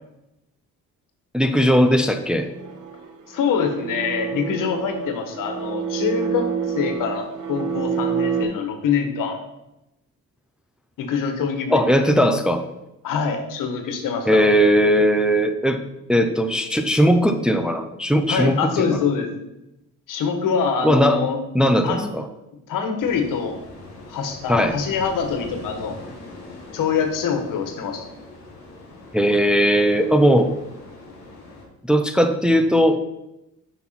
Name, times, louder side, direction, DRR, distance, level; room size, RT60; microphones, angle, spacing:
voice 1, 1.3-2.5 11.7-12.6 14.3-15.8 16.1-19.0 20.8-21.2 21.5-22.2 24.5-24.8 29.1-30.5 31.9-33.0, equal, 5° right, 6 dB, 0.5 m, -18 dB
sound 1, 2.5-8.4, right 7 dB, 70° right, 1.6 m, -28 dB
voice 2, 3.3-6.5 6.8-9.4 11.0-11.9 13.0-14.4 18.3-19.3 20.1-21.4 21.8-22.1 22.7-23.6 24.1-26.0 26.7-28.0, left 6 dB, 80° left, 6 dB, 1.8 m, -24 dB
sound 2, 23.0-31.7, left 2 dB, 55° left, 4.3 m, -41 dB
9.5 x 6.1 x 5.9 m, 0.91 s
cardioid pair, 165°, 32 cm